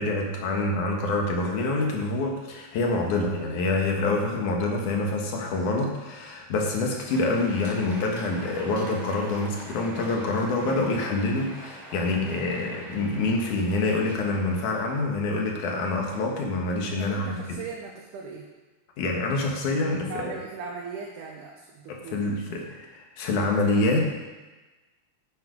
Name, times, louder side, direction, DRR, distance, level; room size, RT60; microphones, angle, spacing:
voice 1, 0.0-17.6 19.0-20.4 21.9-24.1, left 2 dB, 85° left, 1 dB, 3.0 m, -26 dB
Crowd, 6.7-15.5, equal, 35° right, 4.1 m, -45 dB
voice 2, 17.0-18.5 20.1-22.3, right 5 dB, 90° right, -1 dB, 2.6 m, -38 dB
9.6 x 9.0 x 5.2 m, 1.2 s
omnidirectional pair, 3.5 m